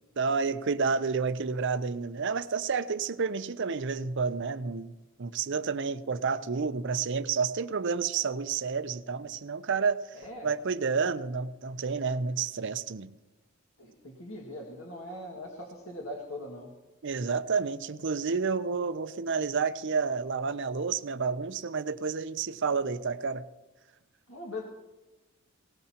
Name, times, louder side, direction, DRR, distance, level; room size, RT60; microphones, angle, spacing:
voice 1, 0.2-4.9 5.2-10.0 10.4-13.1 17.0-23.5, right 5 dB, 60° right, 12 dB, 0.6 m, -30 dB
voice 2, 10.1-10.5 13.8-16.7 24.3-24.6, left 1 dB, 70° left, -1 dB, 2.0 m, -41 dB
19.0 x 18.5 x 2.9 m, 1.1 s
head